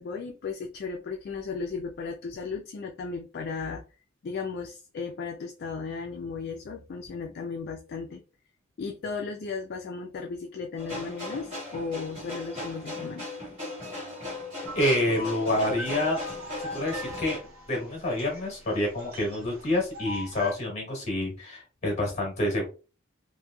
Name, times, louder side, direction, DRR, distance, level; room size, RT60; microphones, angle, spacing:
voice 1, 0.0-3.8 4.2-8.2 8.8-13.3, left 4 dB, 50° left, 2 dB, 0.4 m, -35 dB
sound 1, 10.8-17.4, left 2 dB, 30° right, 1.6 m, -38 dB
voice 2, 14.7-16.2 16.6-17.4 17.7-22.7, left 1 dB, 35° left, -1 dB, 1.4 m, -27 dB
sound 2, 14.7-20.5, left 1 dB, 85° right, 1.0 m, -40 dB
3.0 x 2.5 x 2.2 m, 0.33 s
head